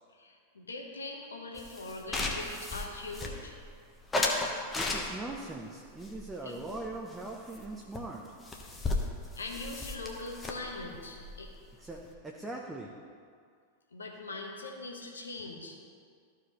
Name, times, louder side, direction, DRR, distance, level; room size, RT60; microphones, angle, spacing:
voice 1, 0.1-3.6 6.4-6.7 8.9-9.0 9.4-11.5 13.9-15.8, left 2 dB, 75° left, 1 dB, 1.2 m, -42 dB
sound 1, 1.6-3.7 4.1-5.4 6.0-7.2 7.5-7.7 7.9-8.0 8.2-12.1, left 2 dB, 15° left, 1.0 m, -35 dB
voice 2, 4.7-8.2 11.8-12.9, right 2 dB, 10° right, -1 dB, 0.7 m, -41 dB
14.0 x 4.8 x 3.1 m, 2.2 s
figure-of-eight pair, 90°, 0 cm